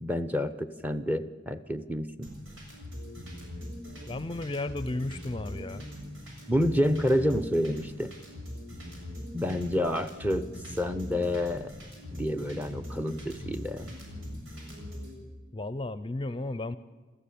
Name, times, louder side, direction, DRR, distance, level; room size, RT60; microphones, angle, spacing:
voice 1, 0.0-2.3 6.5-8.1 9.3-10.5 10.8-11.7 12.1-13.9, equal, 10° right, 12 dB, 0.8 m, -28 dB
sound 1, 2.2-15.1, left 1 dB, 90° right, 7.2 m, -41 dB
voice 2, 4.1-5.9 15.5-16.8, left 2 dB, 25° left, 14 dB, 0.6 m, -34 dB
28.5 x 14.0 x 8.7 m, 1.3 s
head